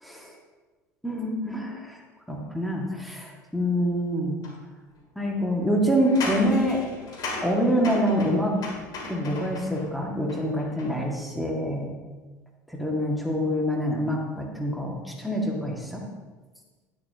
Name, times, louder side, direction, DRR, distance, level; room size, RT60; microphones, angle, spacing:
voice 1, 0.0-0.3 1.0-2.0 2.3-4.4 5.2-6.8 7.4-8.6 9.1-11.9 12.7-16.0, equal, ahead, -1 dB, 2.0 m, -26 dB
sound 1, 4.4-4.5 5.9-9.8 10.3-11.1, left 2 dB, 45° left, 3.0 m, -36 dB
11.5 x 10.5 x 2.9 m, 1.3 s
figure-of-eight pair, 65°, 9 cm